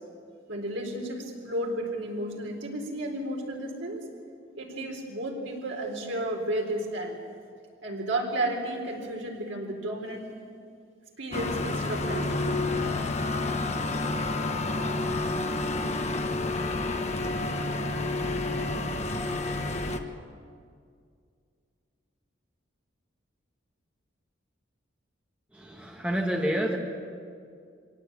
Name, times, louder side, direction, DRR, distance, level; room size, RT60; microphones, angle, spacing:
voice 1, 0.5-4.0 4.5-7.2 7.8-10.3 11.2-12.6, right 1 dB, 75° right, 1 dB, 4.1 m, -32 dB
sound 1, 11.3-20.0, left 2 dB, 35° left, 1.2 m, -29 dB
voice 2, 25.5-26.8, equal, 5° right, 0 dB, 1.9 m, -28 dB
24.5 x 17.5 x 8.8 m, 2.3 s
head